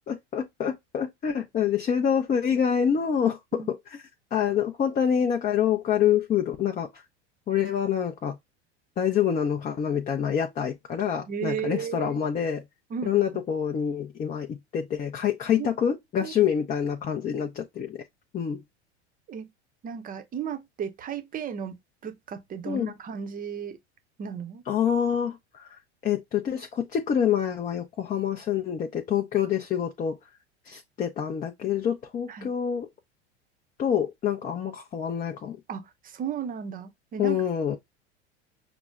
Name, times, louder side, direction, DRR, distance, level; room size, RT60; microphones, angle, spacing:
voice 1, 0.0-4.0 4.3-6.9 7.5-8.4 9.0-12.6 13.0-18.0 18.3-18.6 22.7-22.9 24.7-25.7 26.0-30.2 30.7-32.9 33.8-35.6 37.2-37.8, left 8 dB, 25° left, 0.5 m, -26 dB
voice 2, 11.3-12.2 12.9-13.4 15.5-15.7 16.2-16.3 19.3-19.5 19.8-21.7 22.0-23.8 24.2-24.6 32.3-32.5 35.7-37.4, right 7 dB, 25° right, 0.7 m, -34 dB
5.9 x 2.0 x 2.2 m
hypercardioid pair, 90°, 35 cm